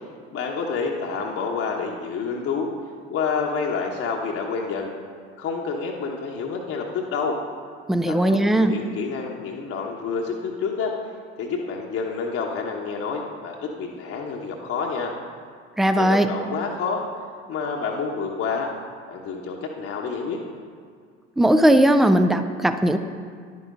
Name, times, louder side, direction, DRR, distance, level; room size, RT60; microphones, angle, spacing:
voice 1, 0.3-2.7 3.1-4.9 5.4-7.4 8.1-11.0 11.4-15.1 15.9-17.0 17.5-18.7 19.1-20.4, left 5 dB, 40° left, 0 dB, 1.1 m, -28 dB
voice 2, 7.9-8.7 15.8-16.3 21.4-23.0, right 1 dB, ahead, 10 dB, 0.4 m, -18 dB
11.0 x 9.5 x 3.8 m, 2.1 s
figure-of-eight pair, 65°, 35 cm